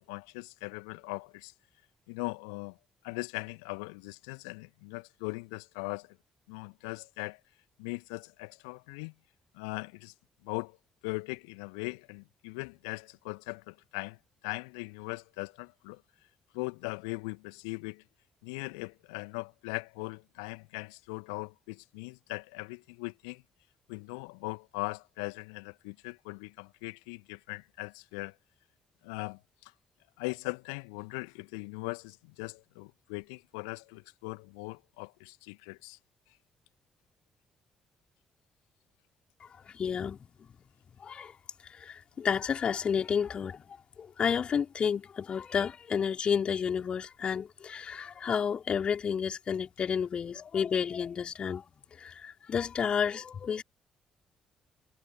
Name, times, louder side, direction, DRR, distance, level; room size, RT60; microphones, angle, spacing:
voice 1, 0.0-1.5 2.1-2.8 3.0-6.2 6.5-7.4 7.8-9.1 9.5-10.1 10.4-10.8 11.0-14.2 14.4-16.0 16.5-18.0 18.4-23.4 23.9-28.3 29.0-29.7 30.2-36.0, left 34 dB, 70° left, 1.9 m, -40 dB
voice 2, 39.7-40.2 41.0-41.3 41.7-43.6 44.0-51.6 52.0-53.6, left 7 dB, 45° left, 4.8 m, -31 dB
figure-of-eight pair, 40°, 2 cm